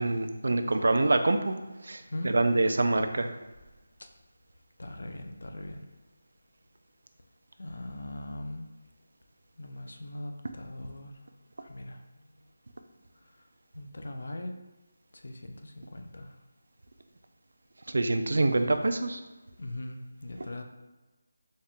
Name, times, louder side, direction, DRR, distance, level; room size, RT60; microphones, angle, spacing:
voice 1, 0.0-1.5 1.8-3.3 17.9-19.2 20.4-20.6, right 2 dB, 55° right, 7 dB, 0.4 m, -26 dB
voice 2, 4.8-5.8 7.6-8.7 9.6-11.1 11.6-12.0 13.7-14.5 15.2-16.3 19.6-20.6, left 1 dB, 55° left, 4 dB, 0.5 m, -40 dB
4.1 x 2.4 x 3.6 m, 1.1 s
figure-of-eight pair, 180°, 0 cm